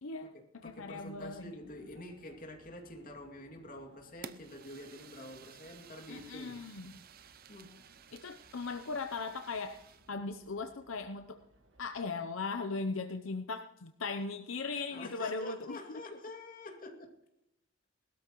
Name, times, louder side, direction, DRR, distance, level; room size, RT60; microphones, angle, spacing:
voice 1, 0.0-1.5 6.1-6.9 8.1-9.8 10.1-11.4 11.8-16.0, left 4 dB, 70° left, 0.7 m, -38 dB
voice 2, 0.6-6.6 7.5-7.8 14.9-17.1, left 1 dB, 45° left, 2.4 m, -47 dB
sound 1, 0.6-12.1, right 1 dB, 65° right, 2.0 m, -65 dB
Fire, 4.2-10.1, right 7 dB, 45° right, 0.6 m, -54 dB
20.0 x 13.0 x 3.1 m
head